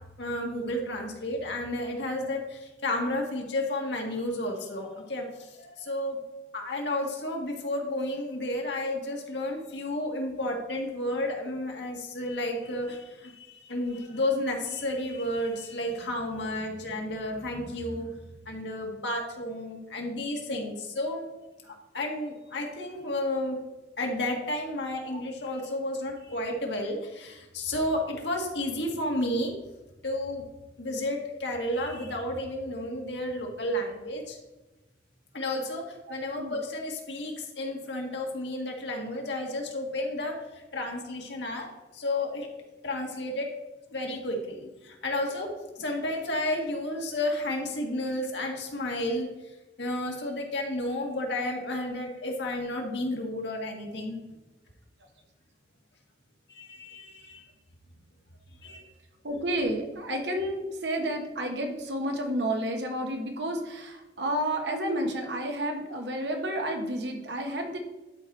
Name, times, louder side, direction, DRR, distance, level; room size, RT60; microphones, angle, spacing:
voice 1, 0.2-6.2 6.5-18.2 18.5-21.2 21.6-23.6 24.0-29.5 30.0-30.4 30.8-34.4 35.3-41.7 41.9-42.5 42.8-43.5 43.9-45.5 45.8-49.3 49.8-54.2 56.5-57.4 58.6-58.8, left 1 dB, 85° left, 1 dB, 1.8 m, -32 dB
voice 2, 36.1-36.6 59.2-67.8, right 1 dB, 80° right, 3 dB, 1.4 m, -31 dB
11.5 x 4.7 x 4.2 m, 1.1 s
head